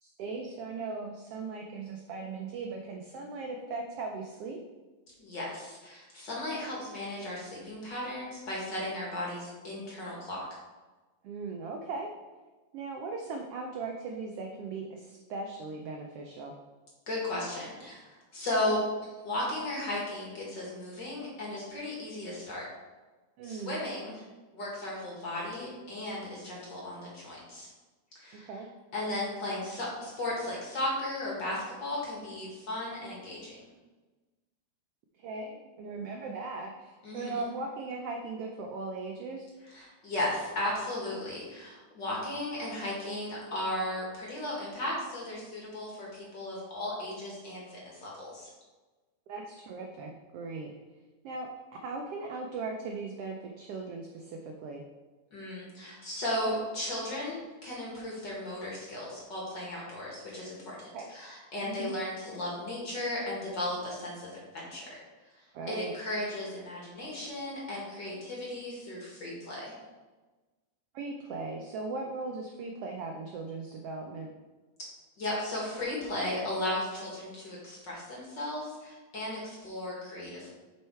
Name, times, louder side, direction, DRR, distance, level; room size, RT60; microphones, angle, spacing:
voice 1, 0.0-4.6 11.2-12.1 12.7-16.6 23.4-23.8 28.5-28.7 35.2-39.5 49.3-50.7 51.2-51.5 51.8-54.8 60.9-61.1 61.6-61.9 65.5-65.9 70.9-74.3, right 3 dB, 85° right, 2 dB, 1.3 m, -38 dB
voice 2, 5.2-10.4 17.1-22.6 23.4-24.2 24.5-27.7 28.2-28.5 28.9-33.6 37.0-37.5 39.7-48.5 55.3-65.0 65.7-69.7 75.2-80.5, left 1 dB, 45° left, -4 dB, 1.9 m, -35 dB
7.5 x 4.5 x 4.5 m, 1.2 s
omnidirectional pair, 3.5 m